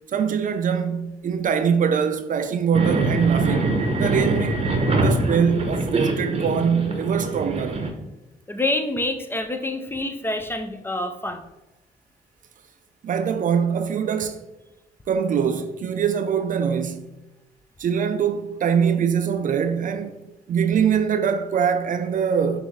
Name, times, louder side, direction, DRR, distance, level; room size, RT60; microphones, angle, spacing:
voice 1, 0.1-4.6 5.0-7.8 13.0-14.4 15.1-17.1 17.8-22.6, right 7 dB, 55° right, 0.4 m, -23 dB
sound 1, 2.7-7.9, right 2 dB, 35° right, 0.8 m, -23 dB
voice 2, 8.5-11.5, left 2 dB, 15° left, 0.5 m, -27 dB
6.1 x 2.6 x 3.1 m
cardioid pair, 65°, 17 cm